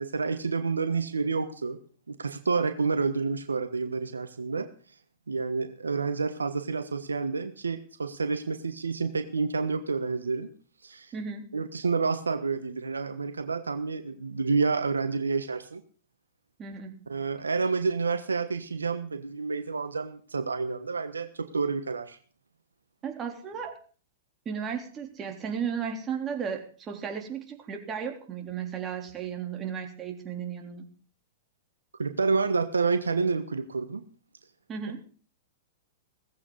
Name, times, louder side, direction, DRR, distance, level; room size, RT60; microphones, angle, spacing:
voice 1, 0.0-1.8 2.1-4.7 5.3-10.5 10.8-11.1 11.5-15.8 17.1-22.2 32.0-34.0, right 4 dB, 90° right, 9 dB, 1.2 m, -29 dB
voice 2, 11.1-11.4 16.6-17.0 23.0-23.7 24.5-30.8 34.7-35.0, right 7 dB, 25° right, 2 dB, 3.6 m, -34 dB
17.5 x 14.5 x 4.1 m, 0.40 s
hypercardioid pair, 110°, 0 cm